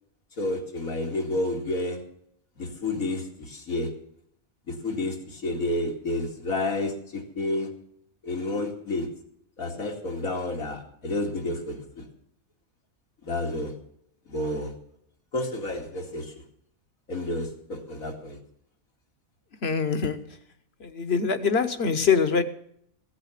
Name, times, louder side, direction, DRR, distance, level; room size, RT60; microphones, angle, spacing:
voice 1, 0.4-2.0 2.6-3.9 4.7-7.7 8.2-9.1 9.6-12.1 13.2-13.7 14.3-14.7 15.3-16.3 17.1-18.4, left 2 dB, 90° left, 2 dB, 2.9 m, -30 dB
voice 2, 19.6-20.2 20.8-22.4, left 5 dB, 50° left, 11 dB, 1.3 m, -24 dB
16.5 x 8.4 x 7.4 m, 0.69 s
omnidirectional pair, 1.4 m